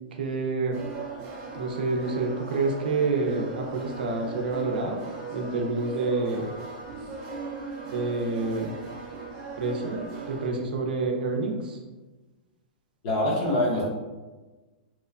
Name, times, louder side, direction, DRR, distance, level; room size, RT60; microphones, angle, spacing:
voice 1, 0.2-0.8 1.6-5.0 5.3-6.5 7.9-8.7 9.6-11.8, right 3 dB, 80° right, 1 dB, 0.5 m, -28 dB
sound 1, 0.7-10.5, right 4 dB, 30° right, 0.4 m, -38 dB
voice 2, 13.0-13.8, left 1 dB, 35° left, -5 dB, 0.8 m, -24 dB
3.0 x 2.1 x 2.4 m, 1.2 s
supercardioid pair, 175°, 5 cm